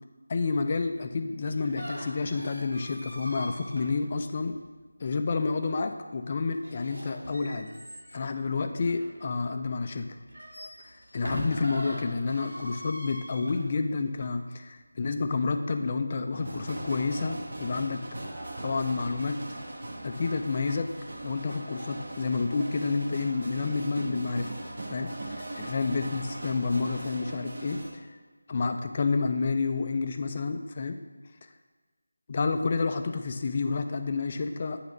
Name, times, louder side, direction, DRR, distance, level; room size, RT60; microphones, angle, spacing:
voice 1, 0.3-4.6 5.0-7.7 8.1-10.1 10.8-18.0 18.6-19.4 20.0-20.9 21.2-24.5 24.9-25.1 25.5-27.8 28.5-31.0 31.4-31.5 32.3-34.8, left 4 dB, 30° left, 6 dB, 0.4 m, -29 dB
sound 1, 1.4-4.7 6.5-9.6 10.1-14.3, equal, 75° right, 2.1 m, -41 dB
sound 2, 16.3-27.9, right 1 dB, 50° right, 1.0 m, -39 dB
8.2 x 2.8 x 5.1 m, 1.4 s
figure-of-eight pair, 165°, 0 cm